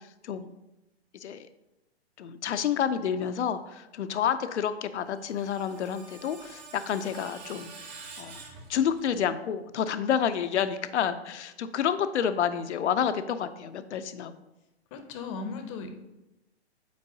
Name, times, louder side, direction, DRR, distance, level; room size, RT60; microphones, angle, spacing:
voice 1, 1.1-1.5 2.2-7.7 8.2-8.4 8.7-14.3, left 8 dB, 85° left, 11 dB, 0.5 m, -29 dB
Screech, 5.0-9.3, right 4 dB, 25° right, 0.9 m, -47 dB
voice 2, 14.9-16.0, left 4 dB, 30° left, 8 dB, 0.6 m, -37 dB
8.4 x 4.6 x 2.7 m, 0.96 s
hypercardioid pair, 140°, 33 cm